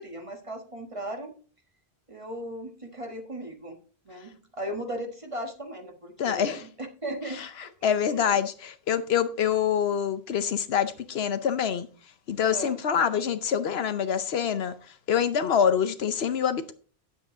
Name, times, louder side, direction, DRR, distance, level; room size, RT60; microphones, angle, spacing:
voice 1, 0.0-1.3 2.1-3.8 4.0-8.4 12.5-12.8, right 1 dB, 30° right, 1.5 m, -37 dB
voice 2, 6.2-6.6 7.4-7.5 7.8-11.9 12.3-14.7 15.1-16.7, left 8 dB, 75° left, 1.0 m, -25 dB
9.6 x 7.9 x 3.8 m
omnidirectional pair, 1.1 m